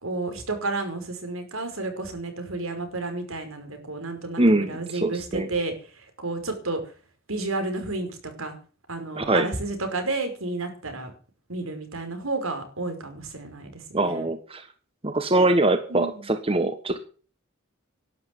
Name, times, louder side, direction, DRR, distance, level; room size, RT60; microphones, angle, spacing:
voice 1, 0.0-5.7 6.2-6.8 7.3-8.6 8.9-11.1 11.5-14.3 15.9-16.2, right 2 dB, 75° right, 7 dB, 5.4 m, -31 dB
voice 2, 4.4-5.5 9.2-9.5 13.9-14.7 15.0-17.0, right 2 dB, 25° right, 9 dB, 1.4 m, -23 dB
12.0 x 10.5 x 9.5 m, 0.39 s
head